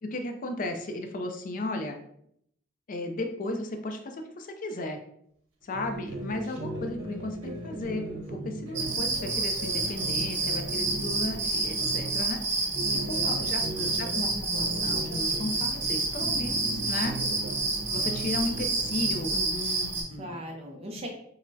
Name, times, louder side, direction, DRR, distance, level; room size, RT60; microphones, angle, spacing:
voice 1, 0.0-2.0 2.9-5.0 5.6-12.4 13.1-17.2 17.9-20.4, left 2 dB, 40° left, 5 dB, 0.4 m, -35 dB
sound 1, 5.7-12.2 12.6-15.9 16.2-19.3, right 2 dB, 85° right, 0.8 m, -38 dB
sound 2, 8.7-20.0, right 3 dB, 60° right, 1.1 m, -29 dB
voice 2, 12.8-13.9 20.2-21.1, equal, 30° right, 1 dB, 0.4 m, -40 dB
5.3 x 2.0 x 2.6 m, 0.72 s
head